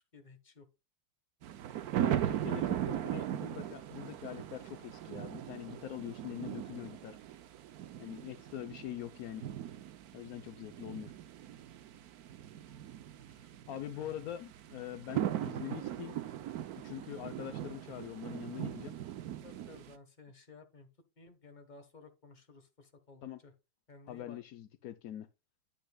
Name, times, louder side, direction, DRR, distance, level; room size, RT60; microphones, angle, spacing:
voice 1, 0.1-0.7 13.9-14.3 19.4-20.9 21.2-23.5 23.9-24.4, left 4 dB, 25° left, 1.3 m, -55 dB
sound 1, 1.4-19.9, right 11 dB, 70° right, 0.9 m, -39 dB
voice 2, 2.0-7.2 8.0-9.5 10.1-11.1 13.3-16.2 16.8-18.9 23.2-23.4 24.1-25.3, left 11 dB, 90° left, 0.7 m, -44 dB
10.5 x 8.2 x 2.3 m
omnidirectional pair, 2.3 m